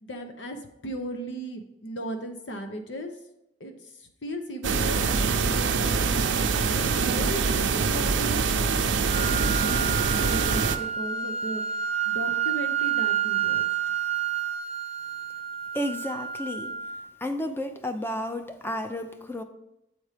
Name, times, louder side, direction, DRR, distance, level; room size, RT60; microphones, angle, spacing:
voice 1, 0.0-3.1 3.6-6.1 6.6-9.4 9.8-11.6 12.0-13.7, right 1 dB, 75° left, 5 dB, 0.9 m, -37 dB
sound 1, 4.6-10.8, right 5 dB, 80° right, 0.6 m, -24 dB
sound 2, 9.1-17.1, right 9 dB, 35° right, 0.5 m, -29 dB
voice 2, 15.7-16.7 17.2-19.4, left 1 dB, 10° left, 7 dB, 0.6 m, -32 dB
7.9 x 4.4 x 5.0 m, 0.87 s
head